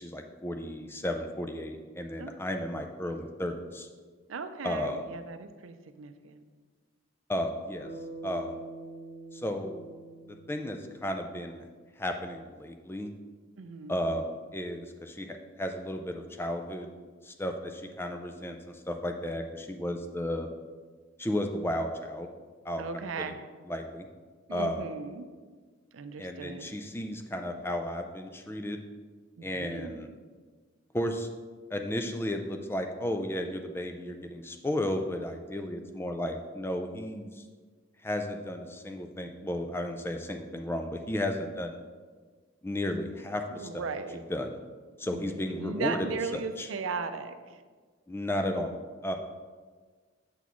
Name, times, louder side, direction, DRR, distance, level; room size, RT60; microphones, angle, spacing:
voice 1, 0.0-3.9 4.6-5.0 7.3-7.9 8.2-8.6 9.3-9.8 10.3-11.6 12.0-13.1 13.9-16.9 17.2-20.5 21.2-22.3 22.6-23.0 23.7-24.1 24.5-24.9 26.2-28.8 29.4-30.1 30.9-31.3 31.7-37.4 38.0-41.8 42.6-43.8 44.3-44.6 45.0-46.7 48.1-49.1, left 1 dB, 10° left, 5 dB, 0.4 m, -34 dB
voice 2, 4.3-6.4 13.6-14.0 22.8-23.4 24.5-25.3 25.9-26.7 29.4-30.1 43.5-44.3 45.0-47.6, right 5 dB, 90° right, 9 dB, 0.5 m, -37 dB
Bass guitar, 7.8-12.2, right 3 dB, 40° left, 1.2 m, -46 dB
6.9 x 6.1 x 3.0 m, 1.5 s
head